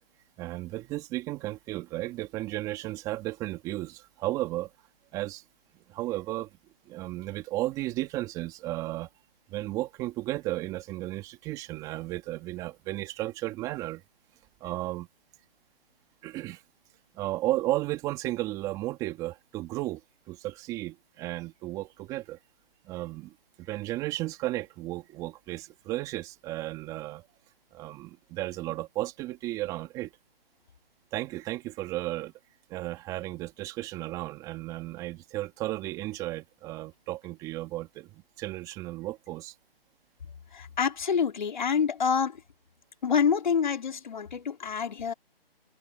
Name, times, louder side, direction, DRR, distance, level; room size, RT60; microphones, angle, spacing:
voice 1, 0.4-4.7 5.1-5.4 5.9-6.5 6.9-9.1 9.5-14.0 14.6-15.1 16.2-16.6 17.1-20.0 20.3-22.4 22.8-27.2 27.7-30.1 31.1-32.3 32.7-39.5, right 17 dB, 10° right, 2.8 m, -34 dB
voice 2, 40.5-42.4 43.0-45.1, left 6 dB, 50° left, 3.8 m, -27 dB
figure-of-eight pair, 160°, 30 cm